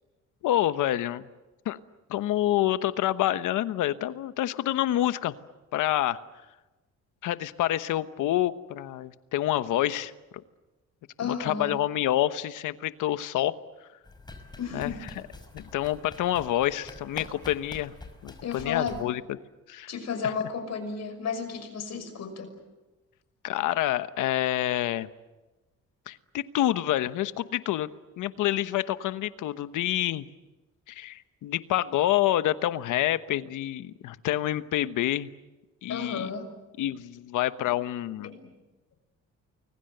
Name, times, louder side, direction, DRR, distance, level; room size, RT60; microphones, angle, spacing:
voice 1, 0.4-1.2 1.6-1.8 2.1-5.3 5.7-6.2 7.2-10.1 11.2-13.5 14.7-15.2 15.5-17.9 18.2-19.2 19.7-19.9 20.2-20.3 23.4-25.1 26.1-27.9 28.2-30.2 30.9-35.3 35.8-36.3 36.8-38.3, left 13 dB, 85° left, 13 dB, 1.2 m, -27 dB
voice 2, 11.2-11.7 14.6-15.0 18.4-19.0 19.9-22.5 35.9-36.5 38.2-38.4, left 6 dB, 60° left, 8 dB, 6.1 m, -33 dB
sound 1, 14.0-19.0, left 2 dB, 15° left, 5.6 m, -46 dB
29.5 x 22.0 x 8.0 m, 1.1 s
cardioid pair, 90°, 30 cm